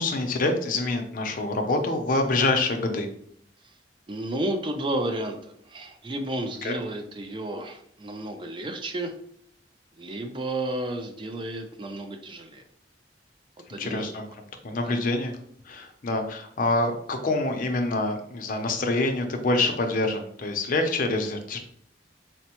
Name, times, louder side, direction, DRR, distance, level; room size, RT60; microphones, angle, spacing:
voice 1, 0.0-3.1 6.6-6.8 13.8-15.3 15.6-21.6, left 2 dB, 50° left, 5 dB, 0.5 m, -26 dB
voice 2, 4.1-9.1 10.0-12.6 13.7-14.1 14.8-15.0, right 1 dB, 30° right, 5 dB, 0.4 m, -32 dB
4.3 x 2.0 x 2.8 m, 0.66 s
head